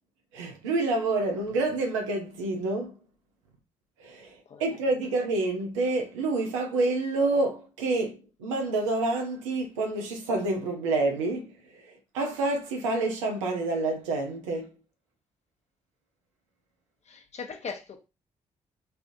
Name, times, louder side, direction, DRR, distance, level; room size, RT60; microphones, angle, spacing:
voice 1, 0.3-2.9 4.0-14.8, right 2 dB, 85° right, 0.6 m, -28 dB
voice 2, 17.1-18.0, left 5 dB, 45° left, 0.8 m, -39 dB
3.3 x 2.4 x 2.7 m
hypercardioid pair, 40°, 15 cm